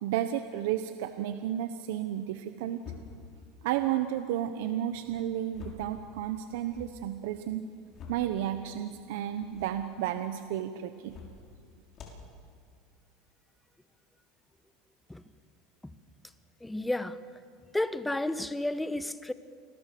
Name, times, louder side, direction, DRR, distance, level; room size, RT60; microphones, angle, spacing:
voice 1, 0.0-2.8 3.6-7.6 8.1-11.2, right 11 dB, 75° right, 9 dB, 1.1 m, -32 dB
sound 1, 2.8-3.3 4.9-5.9 6.3-6.9 7.6-8.3 9.3-9.8 10.9-11.4 11.9-12.3, left 6 dB, 40° left, 5.9 m, -47 dB
voice 2, 16.6-17.2 17.7-19.3, left 1 dB, 5° left, 12 dB, 1.2 m, -31 dB
29.0 x 21.0 x 7.0 m, 2.2 s
supercardioid pair, 110°, 0 cm